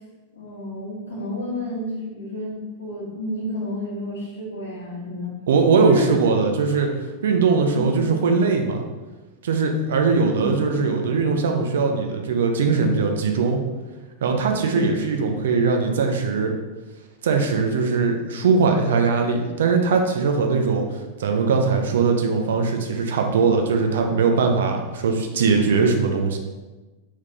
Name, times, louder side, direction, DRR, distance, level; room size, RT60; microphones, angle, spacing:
voice 1, 0.3-5.3 5.8-6.1 7.7-8.2 10.2-10.5 14.5-14.8, left 1 dB, 70° left, -5 dB, 1.4 m, -30 dB
voice 2, 5.5-6.9 7.2-8.8 9.4-13.6 14.2-16.5 17.2-20.8 21.2-26.4, right 4 dB, 60° right, 3 dB, 0.5 m, -20 dB
3.4 x 3.1 x 3.8 m, 1.2 s
figure-of-eight pair, 90°, 0 cm